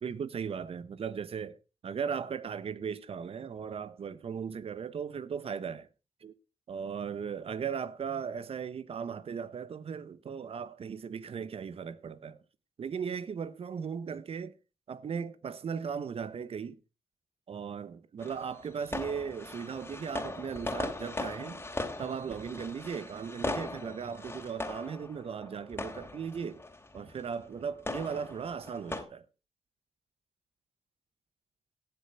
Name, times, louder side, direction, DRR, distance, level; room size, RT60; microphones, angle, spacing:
voice 1, 0.0-1.6 1.8-5.9 6.2-6.3 6.7-12.4 12.8-14.5 14.9-16.7 17.5-21.6 22.0-26.6 26.9-29.2, right 6 dB, 65° right, 1.0 m, -37 dB
sound 1, 18.2-29.0, left 2 dB, 20° left, 3.0 m, -39 dB
17.5 x 7.1 x 4.4 m
cardioid pair, 55°, 11 cm